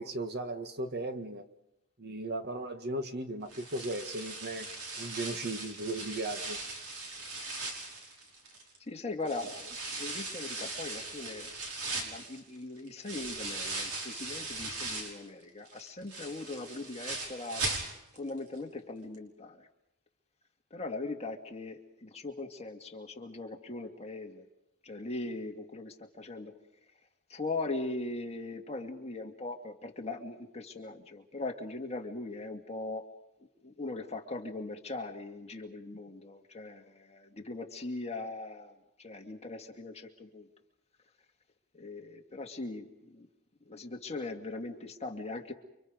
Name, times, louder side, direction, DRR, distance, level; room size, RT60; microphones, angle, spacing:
voice 1, 0.0-1.4 2.0-4.7 5.0-6.6, right 2 dB, 45° right, 7 dB, 1.8 m, -36 dB
sound 1, 3.5-8.8 9.3-15.3 15.7-18.3 18.6-18.7 19.1-19.2, right 3 dB, 75° right, 5.5 m, -39 dB
voice 2, 8.8-11.5 12.0-17.6 18.1-19.7 20.7-24.4 24.8-26.6 27.3-33.0 33.6-40.5 41.7-43.3 43.7-45.5, left 2 dB, 30° left, 3 dB, 2.2 m, -40 dB
30.0 x 25.0 x 5.2 m, 0.89 s
head